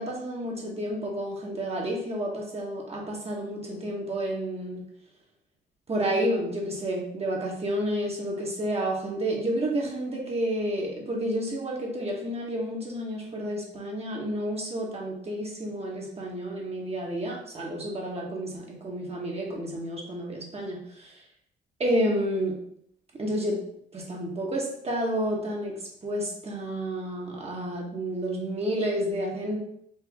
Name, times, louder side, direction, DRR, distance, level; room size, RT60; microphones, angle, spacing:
voice 1, 0.0-4.8 5.9-21.2 21.8-22.6 23.1-23.6 23.9-29.6, right 1 dB, 30° right, -2 dB, 1.1 m, -30 dB
4.4 x 2.7 x 3.5 m, 0.69 s
cardioid pair, 90°, 20 cm